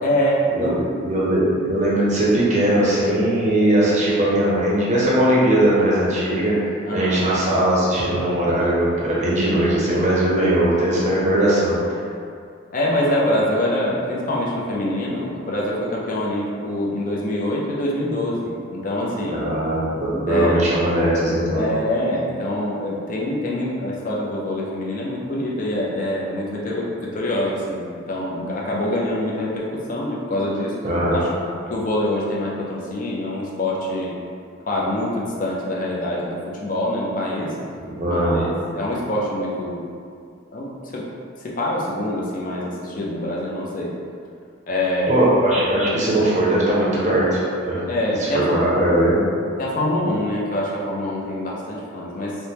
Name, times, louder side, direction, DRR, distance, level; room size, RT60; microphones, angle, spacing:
voice 1, 0.0-0.7 6.8-7.1 12.7-19.4 20.3-20.6 21.5-30.7 31.7-34.1 34.7-37.5 38.1-39.8 40.5-41.0 41.4-43.9 44.7-45.2 47.9-48.5 49.6-52.4, left 1 dB, 40° left, -4 dB, 0.4 m, -25 dB
voice 2, 0.5-6.5 6.9-11.8 19.3-21.6 30.8-31.2 38.0-38.4 45.1-47.8 48.2-49.2, right 1 dB, 35° right, -7 dB, 0.6 m, -19 dB
3.3 x 2.1 x 2.8 m, 2.3 s
head